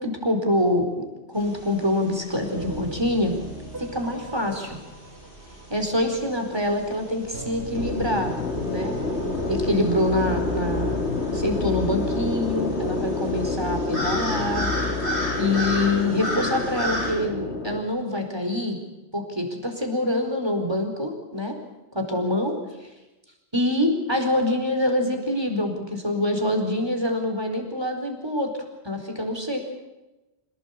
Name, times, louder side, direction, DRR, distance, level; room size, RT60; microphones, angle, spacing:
voice 1, 0.0-3.4 3.8-4.8 5.7-8.3 8.6-8.9 9.5-11.0 11.3-14.7 15.4-18.8 19.1-21.5 21.9-22.5 23.5-28.5 28.8-29.6, left 1 dB, 25° right, 3 dB, 4.7 m, -25 dB
sound 1, 1.4-17.1, equal, 55° left, 8.0 m, -35 dB
sound 2, 2.5-12.1, right 1 dB, 65° right, 4.5 m, -41 dB
sound 3, 7.7-17.8, left 2 dB, 90° left, 2.9 m, -28 dB
27.5 x 18.0 x 8.6 m, 1.0 s
omnidirectional pair, 1.1 m